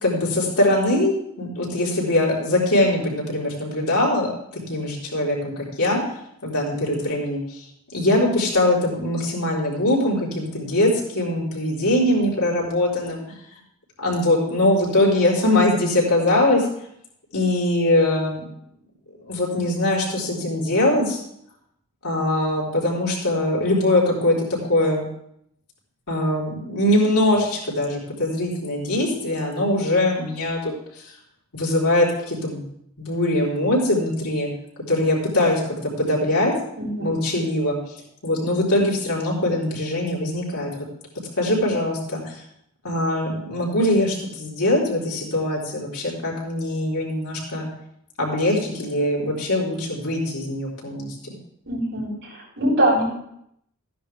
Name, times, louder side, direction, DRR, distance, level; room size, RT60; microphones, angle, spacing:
voice 1, 0.0-6.0 6.4-7.6 7.9-13.2 14.0-16.6 17.3-18.5 19.2-21.2 22.0-24.4 24.7-25.1 26.1-30.7 31.5-32.6 33.0-34.5 34.9-36.5 37.0-37.8 38.2-40.7 41.4-42.4 42.8-47.7 48.2-51.4, left 1 dB, 90° left, -5 dB, 4.1 m, -22 dB
voice 2, 36.8-37.1 51.7-53.1, right 1 dB, 55° right, -4 dB, 5.5 m, -23 dB
14.0 x 10.0 x 3.4 m, 0.73 s
head